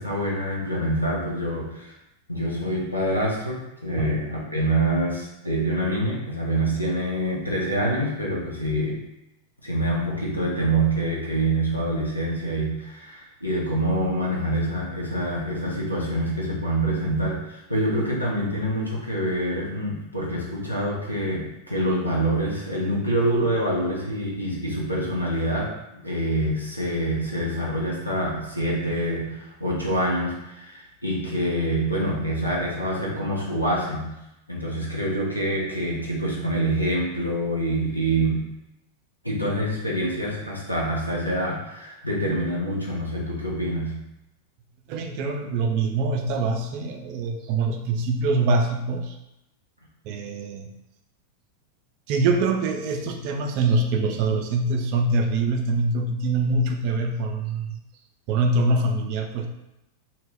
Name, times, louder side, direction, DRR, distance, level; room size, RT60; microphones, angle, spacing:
voice 1, 0.0-2.0 2.3-9.0 9.6-34.1 34.5-38.5 39.2-44.1, right 1 dB, 90° left, -4 dB, 0.6 m, -26 dB
voice 2, 44.9-49.2 50.0-50.7 52.1-57.8 58.3-59.5, right 3 dB, 45° right, 4 dB, 0.3 m, -24 dB
2.1 x 2.0 x 3.4 m, 0.91 s
figure-of-eight pair, 90°, 0 cm